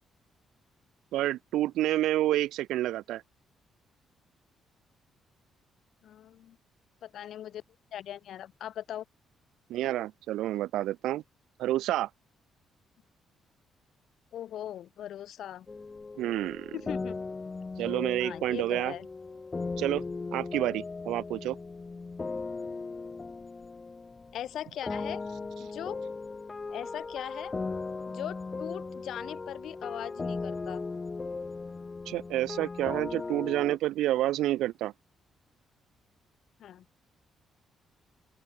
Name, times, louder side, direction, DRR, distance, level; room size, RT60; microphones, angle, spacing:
voice 1, 1.1-3.2 9.7-11.2 11.6-12.1 16.2-16.8 17.8-18.9 19.8-20.0 20.3-21.6 32.1-34.9, right 14 dB, 85° right, 0.9 m, -29 dB
voice 2, 6.0-6.6 7.0-7.6 7.9-9.0 14.3-15.7 16.7-17.2 18.2-19.1 24.3-25.2 25.6-26.0 26.7-27.5 28.1-30.8 36.6-36.8, left 11 dB, 70° left, 1.1 m, -40 dB
sound 1, 15.7-24.5 24.8-33.8, left 4 dB, 30° left, 0.4 m, -38 dB
open air
cardioid pair, 90°, 0 cm